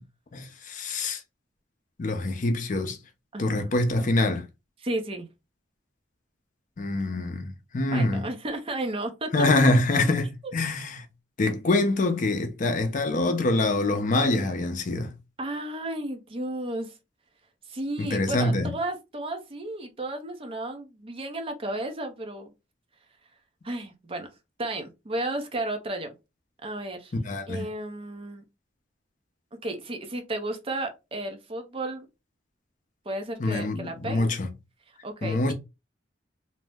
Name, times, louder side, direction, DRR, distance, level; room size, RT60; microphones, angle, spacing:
voice 1, 0.3-1.2 2.0-3.0 3.4-4.5 6.8-8.3 9.3-10.3 10.5-11.1 11.4-15.1 18.0-18.7 27.1-27.7 33.4-34.5 35.2-35.5, left 2 dB, 45° left, 0.5 m, -25 dB
voice 2, 3.3-3.7 4.8-5.3 7.9-9.6 10.4-10.5 15.4-16.9 17.7-22.5 23.6-24.3 24.6-26.1 26.6-27.1 27.5-28.4 29.6-32.1 33.1-34.3 35.0-35.5, right 1 dB, 30° right, 0.6 m, -33 dB
2.6 x 2.0 x 3.4 m
head